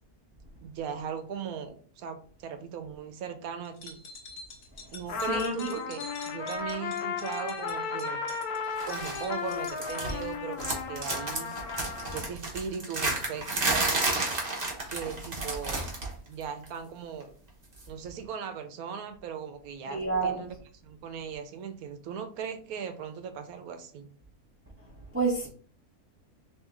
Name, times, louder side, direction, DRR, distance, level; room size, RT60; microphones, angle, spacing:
voice 1, 0.6-4.0 4.9-8.2 8.9-11.5 12.1-14.1 14.9-15.9 16.3-17.3 17.9-20.5 20.8-24.1, right 7 dB, 80° right, 8 dB, 1.1 m, -38 dB
sound 1, 3.7-10.2, left 3 dB, 65° left, 1.5 m, -46 dB
Trumpet, 5.1-12.3, left 5 dB, 85° left, 1.2 m, -35 dB
voice 2, 5.3-5.7 19.9-20.4 25.1-25.5, right 3 dB, 10° right, -5 dB, 0.7 m, -28 dB
sound 2, 8.8-9.2 9.5-10.3 10.6-16.1 16.4-16.7 17.8-17.9, right 2 dB, 30° right, 1.0 m, -31 dB
3.6 x 3.1 x 3.3 m, 0.43 s
omnidirectional pair, 1.6 m